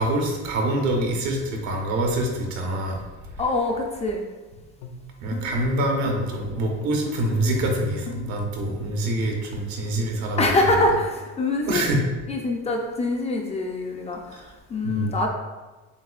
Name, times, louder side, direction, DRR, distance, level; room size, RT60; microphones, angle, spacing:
voice 1, 0.0-3.0 5.2-10.7 11.7-12.0 14.8-15.2, right 1 dB, 75° right, 1 dB, 1.0 m, -25 dB
voice 2, 3.4-4.2 10.4-11.8 12.3-14.4 14.7-15.3, left 2 dB, 25° left, 1 dB, 0.3 m, -24 dB
sound 1, 4.8-8.7, left 5 dB, 80° left, 0.5 m, -37 dB
7.0 x 2.4 x 2.4 m, 1.2 s
cardioid pair, 145°, 29 cm